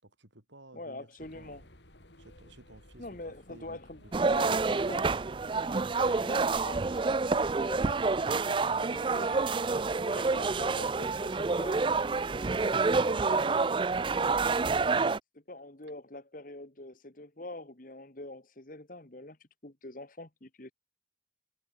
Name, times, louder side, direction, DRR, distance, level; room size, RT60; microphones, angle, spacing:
voice 1, 0.0-1.7 2.2-4.7 13.9-14.6, right 1 dB, 85° right, 6.7 m, -55 dB
voice 2, 0.7-1.6 3.0-4.0 4.3-5.1 5.9-7.2 7.5-9.5 9.9-13.5 15.3-19.4 19.6-20.7, left 2 dB, 45° left, 1.8 m, -44 dB
sound 1, 1.2-12.8, left 1 dB, 75° left, 7.2 m, -55 dB
sound 2, 4.1-15.2, right 4 dB, 25° right, 0.4 m, -28 dB
head